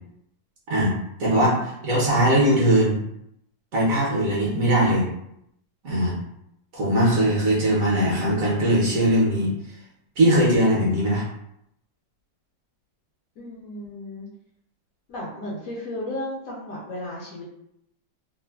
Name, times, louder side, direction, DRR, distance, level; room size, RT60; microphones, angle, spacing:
voice 1, 1.2-3.0 3.7-5.0 5.8-6.1 6.7-9.5 10.2-11.2, right 1 dB, 60° right, -5 dB, 1.0 m, -20 dB
voice 2, 13.4-14.3 15.1-17.4, left 1 dB, 65° left, -6 dB, 0.8 m, -34 dB
3.1 x 2.0 x 2.2 m, 0.78 s
omnidirectional pair, 1.9 m